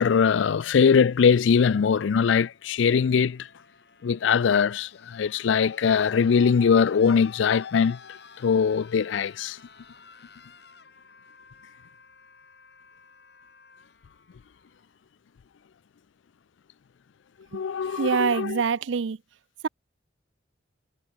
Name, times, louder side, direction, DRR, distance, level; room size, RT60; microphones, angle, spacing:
voice 1, 0.0-3.5 4.0-9.6 17.5-18.6, left 6 dB, 85° left, 0.4 m, -22 dB
sound 1, 1.1-15.0 16.3-16.4, left 5 dB, 60° left, 6.8 m, -54 dB
voice 2, 17.9-19.2, right 6 dB, 80° right, 0.5 m, -25 dB
head